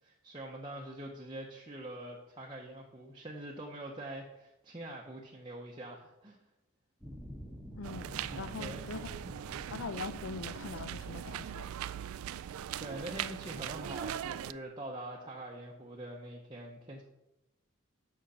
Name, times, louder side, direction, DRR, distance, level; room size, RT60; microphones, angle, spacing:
voice 1, 0.0-6.4 8.6-9.4 12.8-17.0, right 1 dB, 20° right, -3 dB, 0.8 m, -44 dB
sound 1, 7.0-12.0, equal, 5° left, 1.0 m, -48 dB
voice 2, 7.8-9.4 9.7-11.7, left 4 dB, 75° left, 13 dB, 0.5 m, -42 dB
sound 2, 7.8-14.5, right 10 dB, 90° right, 0.3 m, -40 dB
6.4 x 6.4 x 5.6 m, 0.94 s
head